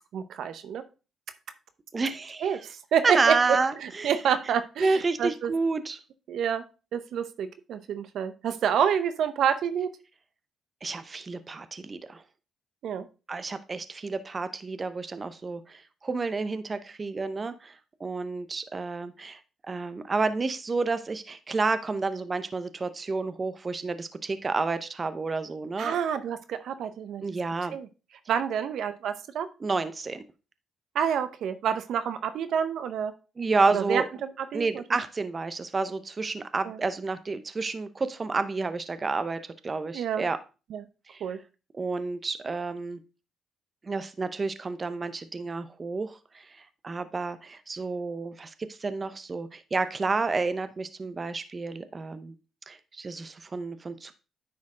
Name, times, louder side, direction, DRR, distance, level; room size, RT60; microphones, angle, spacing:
voice 1, 0.1-0.9 2.4-5.5 6.3-6.6 6.9-9.9 12.8-13.1 25.8-27.2 27.7-27.9 28.3-29.5 30.9-33.1 33.7-34.8 36.6-36.8 39.9-40.3 40.7-40.8 41.2-41.4, right 8 dB, 70° right, 11 dB, 0.6 m, -28 dB
voice 2, 1.9-2.6 3.0-4.1 4.8-6.0 10.8-12.2 13.3-26.0 27.2-27.8 29.6-30.2 33.4-34.1 34.5-40.4 41.1-41.2 41.7-43.0 43.8-52.3 52.7-54.1, right 3 dB, 30° right, 12 dB, 0.6 m, -30 dB
9.6 x 4.4 x 3.7 m, 0.31 s
cardioid pair, 90°, 0 cm